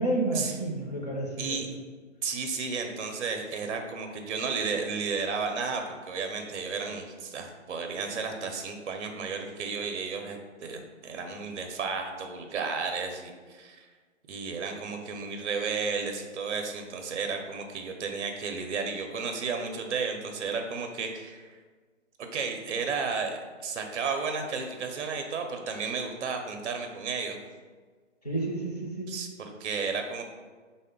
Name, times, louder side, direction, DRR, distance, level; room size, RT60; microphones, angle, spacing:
voice 1, 0.0-1.6 28.2-29.2, right 2 dB, 35° left, -3 dB, 0.5 m, -30 dB
voice 2, 2.2-13.9 14.3-21.6 22.3-27.4 29.1-30.2, right 5 dB, 65° right, 4 dB, 0.5 m, -33 dB
3.6 x 2.1 x 3.6 m, 1.5 s
hypercardioid pair, 180°, 38 cm